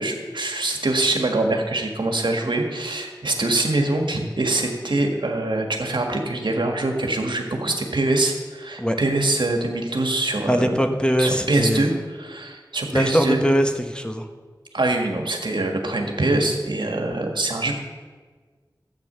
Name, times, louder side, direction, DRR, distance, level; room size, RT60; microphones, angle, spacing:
voice 1, 0.0-10.9 11.2-13.4 14.7-17.7, right 2 dB, 80° right, 3 dB, 1.7 m, -24 dB
voice 2, 10.5-11.9 12.9-14.3, equal, 10° left, 5 dB, 1.1 m, -21 dB
12.0 x 8.6 x 6.8 m, 1.5 s
wide cardioid pair, 50°, 8 cm